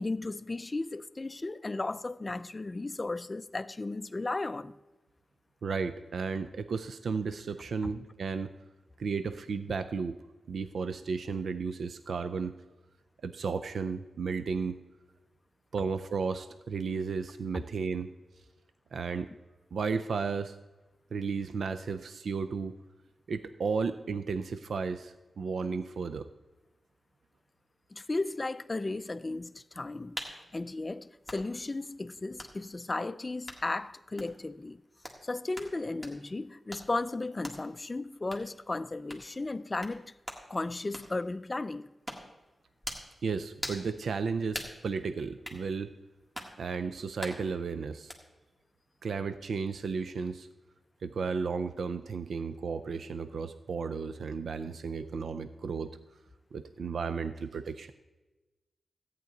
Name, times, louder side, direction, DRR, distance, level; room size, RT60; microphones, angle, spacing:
voice 1, 0.0-4.8 17.5-17.6 27.9-34.8 35.2-40.1 40.5-41.9, left 2 dB, 30° left, 0.4 m, -35 dB
voice 2, 5.6-8.5 9.0-10.2 10.5-12.6 13.2-14.8 15.7-18.1 18.9-19.3 19.7-20.6 21.1-22.7 23.3-26.3 43.2-45.9 46.6-48.1 49.0-50.5 51.0-55.9 56.5-57.9, right 5 dB, 80° right, 0.4 m, -33 dB
sound 1, 30.2-30.4 31.2-31.4 32.4-32.5 33.5-33.6 34.2-34.4 35.0-35.2 35.5-35.7 36.0-36.2 36.7-36.9 37.4-37.6 38.3-38.5 39.1-39.3 39.8-40.0 40.2-40.4 40.9-41.1 42.1-42.3 42.8-43.1 43.6-43.9 44.5-44.8 45.4-45.6 46.3-46.5 47.2-47.4 48.1-48.2, equal, 10° right, 1.7 m, -40 dB
13.5 x 9.1 x 3.9 m
wide cardioid pair, 80°, 0 cm